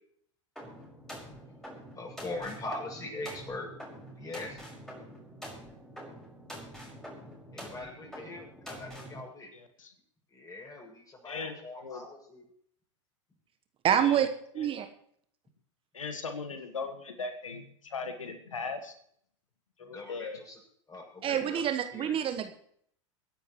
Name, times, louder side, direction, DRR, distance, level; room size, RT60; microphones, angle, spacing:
sound 1, 0.6-9.2, equal, 5° left, 5.4 m, -46 dB
voice 1, 1.9-3.7 4.2-4.6 7.5-9.5 10.3-12.5 19.8-20.6 20.9-22.2, left 2 dB, 20° left, 0 dB, 7.3 m, -42 dB
voice 2, 9.5-9.9 11.3-12.0 14.0-14.3 14.6-14.7 15.9-18.9 19.8-20.4, left 4 dB, 90° left, 7 dB, 1.6 m, -39 dB
voice 3, 13.8-14.3 14.5-14.9 21.2-22.5, right 9 dB, 35° right, 9 dB, 1.2 m, -27 dB
23.5 x 10.5 x 3.2 m, 0.64 s
hypercardioid pair, 90°, 16 cm